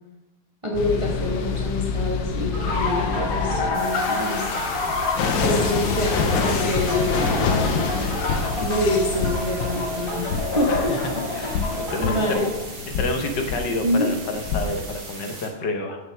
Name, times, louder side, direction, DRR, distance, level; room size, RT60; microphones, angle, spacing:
voice 1, 0.6-4.6 5.4-8.2 8.6-10.9 11.3-11.7 12.0-12.5 13.8-14.1, left 1 dB, 15° right, -2 dB, 1.2 m, -26 dB
sound 1, 0.7-15.0, left 5 dB, 90° left, 1.6 m, -26 dB
sound 2, 2.5-12.3, left 1 dB, 15° left, 2.3 m, -31 dB
sound 3, 3.7-15.5, right 3 dB, 65° right, 2.8 m, -39 dB
voice 2, 10.7-11.0 11.3-12.4 13.0-16.0, left 2 dB, 60° left, 4 dB, 1.5 m, -29 dB
7.6 x 6.5 x 5.9 m, 1.1 s
omnidirectional pair, 2.2 m